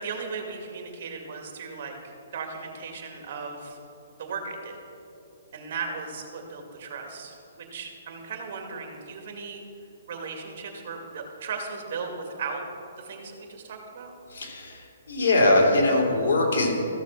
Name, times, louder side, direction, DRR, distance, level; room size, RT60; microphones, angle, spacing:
voice 1, 0.0-3.8 4.2-4.8 5.5-9.6 10.1-12.6 13.0-14.1, right 5 dB, 50° right, 3 dB, 2.2 m, -36 dB
voice 2, 14.3-14.8 15.1-16.7, left 2 dB, 70° left, -2 dB, 3.1 m, -21 dB
14.5 x 7.2 x 5.9 m, 2.8 s
hypercardioid pair, 160°, 0 cm